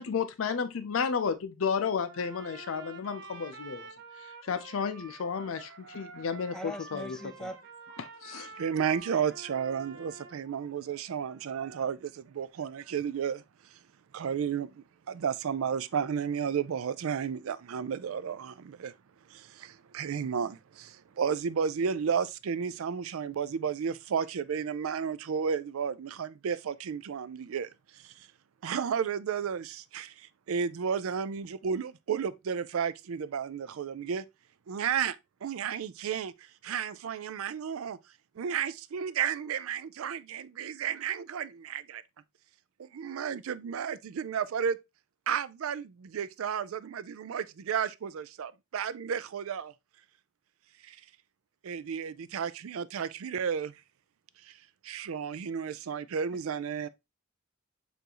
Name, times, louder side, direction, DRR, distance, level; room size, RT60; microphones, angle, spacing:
voice 1, 0.0-3.9 4.4-7.2 8.0-8.5, left 6 dB, 75° left, 0.5 m, -32 dB
Trumpet, 2.0-10.4, right 3 dB, 60° right, 0.7 m, -48 dB
voice 2, 6.5-7.6, equal, 5° left, 0.4 m, -40 dB
voice 3, 8.6-13.4 14.1-18.9 19.3-28.3 28.6-34.2 34.7-35.2 35.4-38.0 38.4-42.0 42.8-44.8 45.3-49.7 50.8-51.0 51.6-53.8 54.4-54.5 54.8-56.9, right 7 dB, 80° right, 0.4 m, -33 dB
6.8 x 2.6 x 2.9 m
head